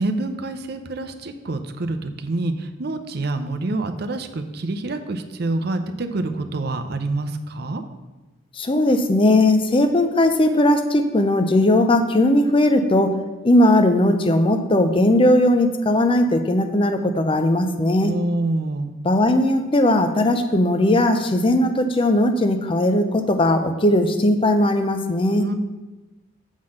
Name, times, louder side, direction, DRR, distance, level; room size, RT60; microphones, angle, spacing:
voice 1, 0.0-7.8 18.0-19.0 25.4-25.5, right 2 dB, 55° right, 7 dB, 0.6 m, -26 dB
voice 2, 8.5-13.1 13.4-18.1 19.0-25.4, left 1 dB, 25° left, 7 dB, 0.5 m, -18 dB
7.2 x 3.9 x 6.3 m, 1.1 s
head